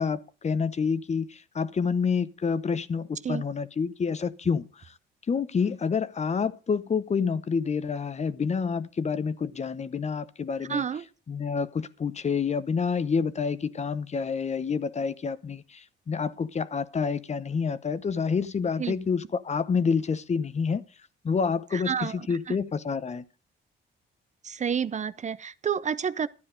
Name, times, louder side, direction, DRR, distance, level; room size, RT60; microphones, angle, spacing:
voice 1, 0.0-4.7 5.3-10.8 11.3-20.8 21.2-23.2, left 5 dB, 35° left, 0.8 m, -28 dB
voice 2, 10.7-11.1 18.8-18.9 21.7-22.6 24.4-26.3, right 7 dB, 35° right, 0.6 m, -30 dB
12.5 x 9.7 x 5.1 m
cardioid pair, 90°, 20 cm